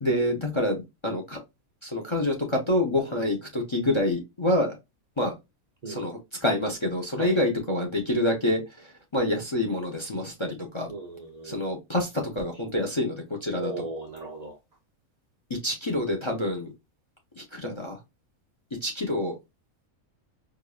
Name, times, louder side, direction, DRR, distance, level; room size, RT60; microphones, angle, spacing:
voice 1, 0.0-1.4 1.8-4.7 5.2-5.3 5.9-8.6 9.1-10.9 11.4-13.8 15.5-16.7 17.4-18.0 18.8-19.3, left 1 dB, 35° left, 0.5 m, -27 dB
voice 2, 10.9-11.6 13.5-14.6, right 2 dB, 80° right, 0.3 m, -37 dB
4.8 x 2.6 x 2.3 m
omnidirectional pair, 1.5 m